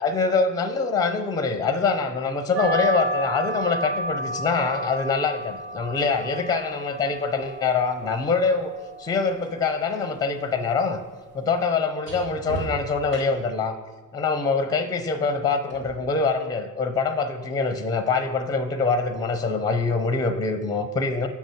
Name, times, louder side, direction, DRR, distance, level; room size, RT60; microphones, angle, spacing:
voice 1, 0.0-8.7 9.0-11.0 11.3-13.8 14.1-21.3, left 4 dB, 10° left, 9 dB, 0.5 m, -24 dB
sound 1, 2.6-11.6, right 1 dB, 65° right, 1.1 m, -33 dB
sound 2, 5.6-9.6 9.9-13.6 15.7-15.9, right 4 dB, 85° right, 1.6 m, -41 dB
7.2 x 5.2 x 3.6 m, 1.2 s
figure-of-eight pair, 55°, 47 cm